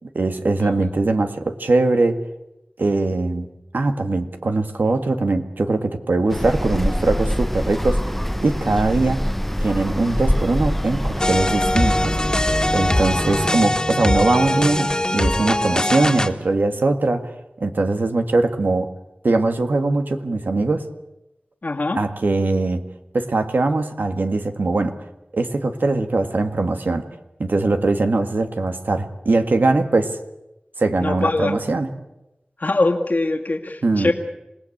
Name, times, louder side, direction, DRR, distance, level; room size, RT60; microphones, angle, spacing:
voice 1, 0.0-2.2 2.8-3.5 3.7-8.0 8.4-9.3 9.6-12.2 12.7-17.3 17.6-18.9 19.2-20.8 21.9-22.8 23.1-24.9 25.3-27.0 27.4-30.2 30.8-31.9 33.8-34.1, right 2 dB, 85° right, 6 dB, 1.9 m, -21 dB
sound 1, 6.3-13.5, equal, 5° left, 1.0 m, -24 dB
sound 2, 11.2-16.3, left 1 dB, 25° left, 2.1 m, -21 dB
voice 2, 21.6-22.0 31.0-31.5 32.6-34.1, left 2 dB, 65° left, 2 dB, 2.1 m, -22 dB
27.0 x 18.5 x 8.7 m, 0.95 s
wide cardioid pair, 55°, 3 cm